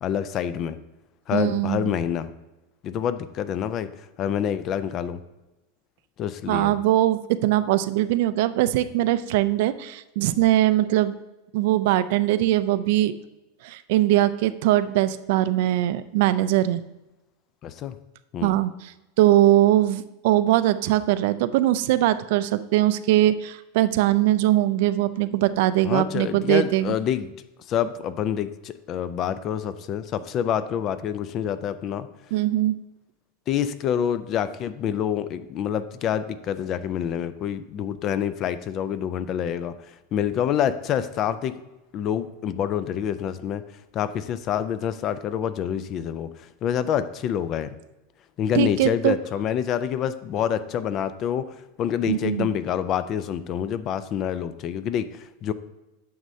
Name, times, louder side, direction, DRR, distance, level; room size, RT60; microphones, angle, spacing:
voice 1, 0.0-0.8 1.3-2.3 2.8-3.9 4.2-5.2 6.2-6.8 17.6-17.9 18.3-18.6 25.8-27.3 27.7-32.1 33.5-39.8 40.1-41.6 41.9-43.6 43.9-47.7 48.4-55.5, left 9 dB, 30° left, 14 dB, 0.3 m, -27 dB
voice 2, 1.3-1.8 6.5-11.2 11.5-13.2 13.6-16.8 18.4-18.9 19.2-26.9 32.3-32.8 48.5-49.2 52.0-52.5, right 14 dB, 55° right, 14 dB, 0.4 m, -21 dB
9.3 x 6.4 x 2.7 m, 1.0 s
supercardioid pair, 160°, 0 cm